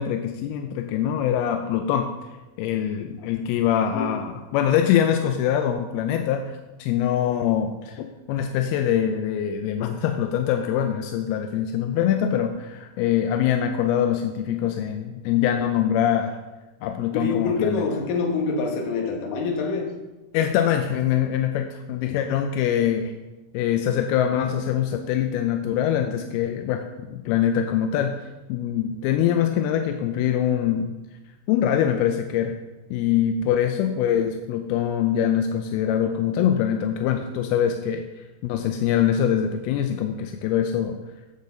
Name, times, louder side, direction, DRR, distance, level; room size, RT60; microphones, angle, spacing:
voice 1, 0.0-2.1 2.6-6.5 6.8-16.4 16.8-17.8 20.3-23.1 23.5-28.1 28.5-30.9 31.5-32.6 32.9-38.0 38.4-41.0, left 9 dB, 85° left, 6 dB, 2.5 m, -23 dB
voice 2, 17.1-19.9, left 4 dB, 70° left, 1 dB, 2.7 m, -26 dB
9.3 x 7.4 x 3.8 m, 1.1 s
omnidirectional pair, 4.4 m